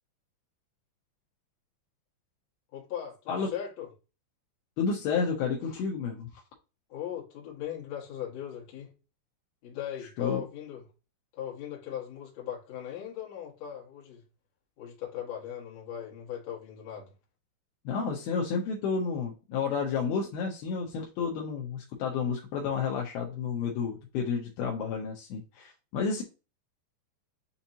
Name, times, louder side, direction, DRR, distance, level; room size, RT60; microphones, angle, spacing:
voice 1, 2.7-3.9 6.9-8.9 9.6-10.8 11.3-14.2 14.8-17.1, left 10 dB, 60° left, 1.8 m, -38 dB
voice 2, 4.8-6.3 10.2-10.4 17.9-26.2, left 5 dB, 85° left, 2.2 m, -31 dB
6.9 x 2.8 x 2.7 m
omnidirectional pair, 5.2 m